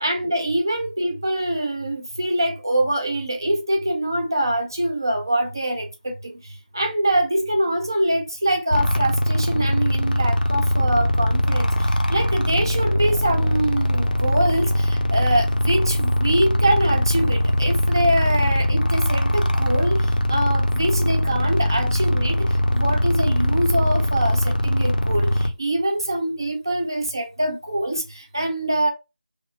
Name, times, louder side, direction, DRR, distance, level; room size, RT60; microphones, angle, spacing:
voice 1, 0.0-6.3 6.7-28.9, right 1 dB, 25° right, 0.4 m, -24 dB
sound 1, 8.7-25.5, left 1 dB, 55° left, 0.5 m, -21 dB
2.9 x 2.0 x 4.0 m
figure-of-eight pair, 170°, 6 cm